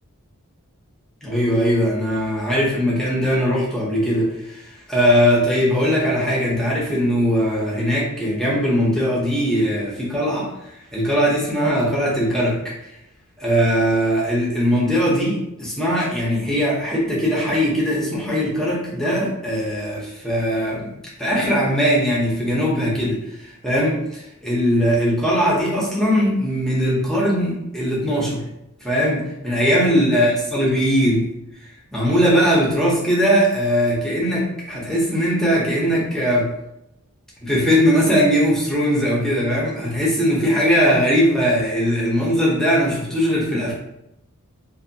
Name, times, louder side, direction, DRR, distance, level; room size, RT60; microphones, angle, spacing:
voice 1, 1.2-12.7 13.4-20.9 21.2-28.5 28.8-31.3 31.9-36.6 37.4-43.7, equal, ahead, -6 dB, 0.8 m, -20 dB
2.8 x 2.5 x 2.7 m, 0.85 s
head